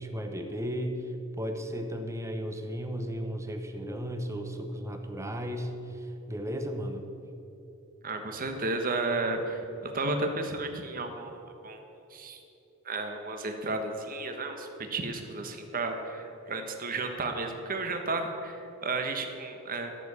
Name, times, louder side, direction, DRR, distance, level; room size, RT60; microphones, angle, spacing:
voice 1, 0.0-7.1, equal, 15° right, 5 dB, 1.0 m, -35 dB
voice 2, 8.0-11.8 12.1-12.4 12.8-19.9, right 3 dB, 40° right, 5 dB, 1.3 m, -33 dB
13.0 x 7.1 x 8.2 m, 2.8 s
head